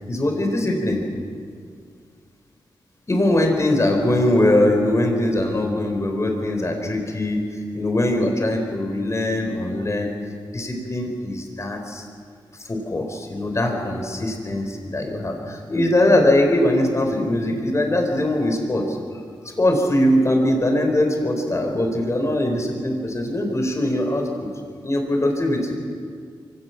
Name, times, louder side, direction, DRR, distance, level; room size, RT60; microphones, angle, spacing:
voice 1, 0.1-1.0 3.1-10.1 10.5-12.0 12.6-19.0 19.4-24.5 24.8-25.8, left 1 dB, 35° left, 3 dB, 4.9 m, -21 dB
24.0 x 17.5 x 7.3 m, 2.1 s
cardioid pair, 60°, 9 cm